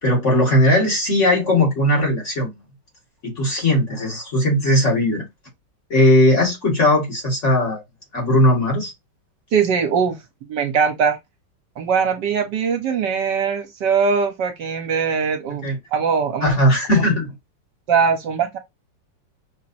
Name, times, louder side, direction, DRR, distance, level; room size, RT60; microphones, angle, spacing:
voice 1, 0.0-2.5 3.2-5.2 5.9-7.8 8.1-8.9 15.5-15.8 16.4-17.3, left 1 dB, 40° left, 2.1 m, -18 dB
voice 2, 9.5-11.2 11.8-16.5 17.9-18.6, right 6 dB, 70° right, 1.4 m, -21 dB
5.7 x 2.9 x 2.6 m
omnidirectional pair, 2.1 m